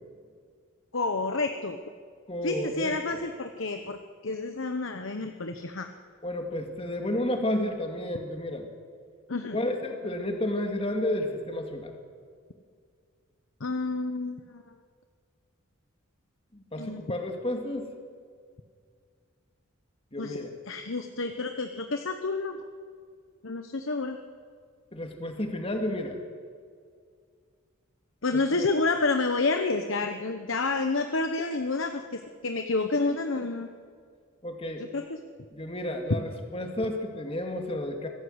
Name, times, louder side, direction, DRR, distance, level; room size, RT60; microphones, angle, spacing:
voice 1, 0.9-1.8 2.4-5.9 9.3-9.6 13.6-14.6 16.8-17.0 20.2-20.4 20.7-22.6 23.4-24.2 28.2-33.7 34.8-35.2, left 3 dB, 65° left, 6 dB, 1.1 m, -29 dB
voice 2, 2.3-3.0 6.2-8.7 9.5-11.9 16.5-17.9 20.1-20.5 24.9-26.2 28.5-28.7 34.4-34.9 35.5-38.1, left 1 dB, 30° left, 4 dB, 2.3 m, -31 dB
25.0 x 16.5 x 8.1 m, 2.1 s
head